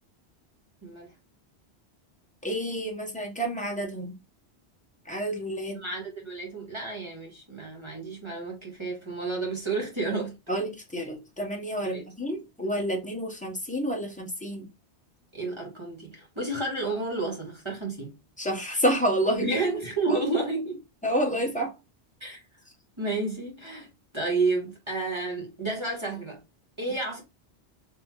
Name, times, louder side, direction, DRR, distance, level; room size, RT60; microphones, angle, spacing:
voice 1, 0.8-1.1 5.7-10.4 11.8-12.0 15.3-18.2 19.3-20.8 22.2-22.4 23.0-26.4 26.8-27.2, right 3 dB, 25° right, 1.4 m, -31 dB
voice 2, 2.4-4.2 5.1-5.8 10.5-14.7 18.4-19.5 20.1-20.2 21.0-21.7, equal, 5° left, 1.0 m, -29 dB
3.7 x 3.0 x 3.0 m
omnidirectional pair, 1.1 m